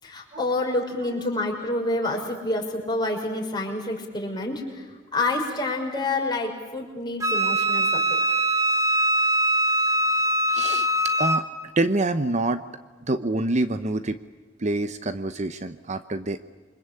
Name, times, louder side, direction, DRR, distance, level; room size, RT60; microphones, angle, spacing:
voice 1, 0.0-4.8 5.1-8.2, left 2 dB, 25° left, 0 dB, 5.8 m, -28 dB
Wind instrument woodwind instrument, 7.2-11.5, right 1 dB, 15° right, 1.8 m, -22 dB
voice 2, 10.5-10.9 11.2-11.5 11.8-12.6 13.0-14.2 14.6-16.4, right 2 dB, 40° right, 11 dB, 0.9 m, -26 dB
28.0 x 24.5 x 8.5 m, 1.4 s
head